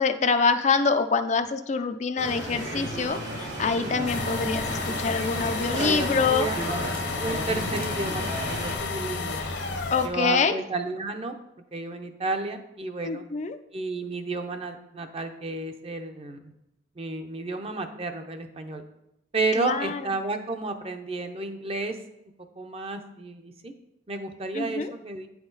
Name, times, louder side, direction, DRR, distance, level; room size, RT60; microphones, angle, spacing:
voice 1, 0.0-6.5 9.9-10.6 13.0-13.6 19.5-20.0 24.5-24.9, left 5 dB, 40° left, 9 dB, 0.4 m, -25 dB
sound 1, 2.2-8.8, right 1 dB, 75° right, 2.6 m, -33 dB
sound 2, 4.1-10.1, left 4 dB, 70° left, 1.0 m, -31 dB
voice 2, 5.7-6.6 7.2-9.4 10.0-11.3 11.7-13.2 13.7-16.5 17.0-18.8 19.3-22.0 22.2-22.3 22.6-23.7 24.1-25.3, right 3 dB, 30° right, 7 dB, 0.6 m, -32 dB
8.9 x 5.9 x 4.0 m, 0.87 s
head